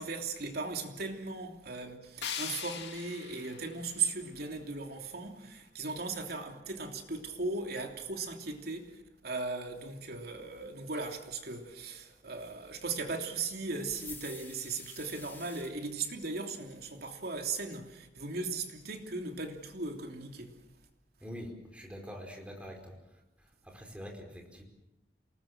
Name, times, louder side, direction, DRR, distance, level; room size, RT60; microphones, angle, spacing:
voice 1, 0.0-20.5, right 3 dB, 60° right, 3.1 m, -37 dB
sound 1, 2.2-5.2, left 8 dB, 75° left, 2.3 m, -42 dB
sound 2, 13.9-15.7, left 3 dB, 10° left, 3.1 m, -48 dB
voice 2, 21.2-22.9 23.6-24.6, equal, 5° right, 4.7 m, -45 dB
28.0 x 19.5 x 7.4 m
head